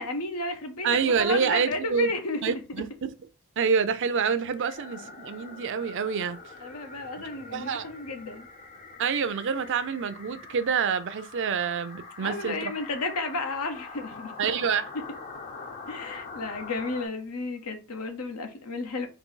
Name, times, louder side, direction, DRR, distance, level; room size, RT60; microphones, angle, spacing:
voice 1, 0.0-2.8 6.6-8.5 12.2-14.3 15.9-19.1, left 3 dB, 85° left, 0.8 m, -33 dB
voice 2, 0.8-2.1 2.4-3.1 3.6-6.4 7.5-7.9 9.0-12.7 14.4-14.9, right 6 dB, 55° right, 0.5 m, -27 dB
sound 1, 4.7-17.1, left 4 dB, 35° left, 0.6 m, -44 dB
3.8 x 2.6 x 3.8 m
head